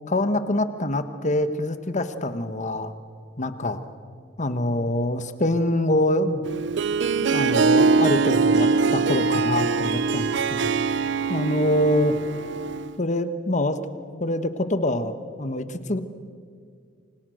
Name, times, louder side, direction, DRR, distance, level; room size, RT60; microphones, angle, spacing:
voice 1, 0.1-2.9 3.4-3.8 4.4-6.4 7.3-10.8 11.3-12.2 13.0-13.8 14.2-16.0, left 1 dB, 40° left, 11 dB, 1.4 m, -25 dB
Harp, 6.4-13.0, right 4 dB, 65° right, 0.6 m, -22 dB
28.5 x 25.5 x 6.5 m, 2.1 s
head